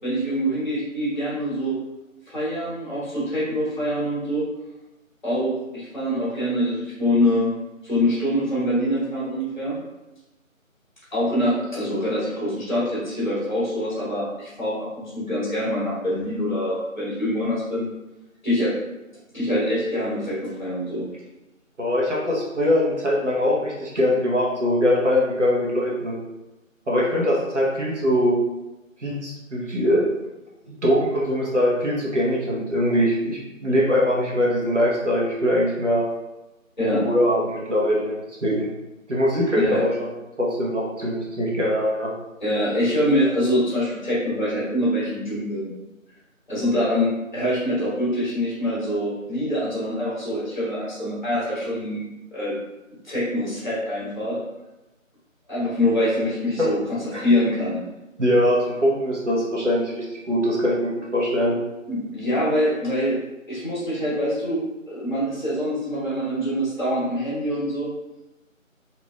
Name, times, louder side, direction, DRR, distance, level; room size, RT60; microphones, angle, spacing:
voice 1, 0.0-1.7 2.3-4.5 5.2-7.5 7.8-9.8 11.1-17.9 18.4-18.7 19.3-21.1 36.8-37.0 39.5-39.8 42.4-45.7 46.5-52.6 53.0-54.4 55.5-57.8 61.4-61.5 61.9-63.2 63.5-67.9, equal, 35° left, -9 dB, 1.4 m, -24 dB
voice 2, 21.8-26.2 26.9-28.4 29.0-30.1 30.6-36.1 36.8-38.7 39.1-39.9 40.4-42.1 56.6-56.7 57.1-57.2 58.2-61.6, equal, 60° right, -5 dB, 1.1 m, -22 dB
3.0 x 2.9 x 2.4 m, 1.0 s
figure-of-eight pair, 165°, 40 cm